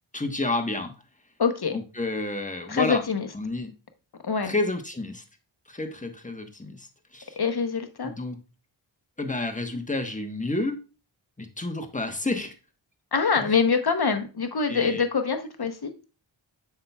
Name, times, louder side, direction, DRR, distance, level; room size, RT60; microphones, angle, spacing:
voice 1, 0.1-0.9 1.7-3.0 3.3-3.7 4.4-5.2 5.7-6.9 7.1-7.4 8.0-8.4 9.2-10.8 11.4-12.5 13.4-13.5 14.7-15.0, left 2 dB, 15° left, 1.1 m, -30 dB
voice 2, 1.4-1.8 2.7-3.3 4.2-4.5 7.4-8.1 13.1-15.9, left 5 dB, 50° left, 0.9 m, -25 dB
7.6 x 5.8 x 2.3 m
wide cardioid pair, 50°, 49 cm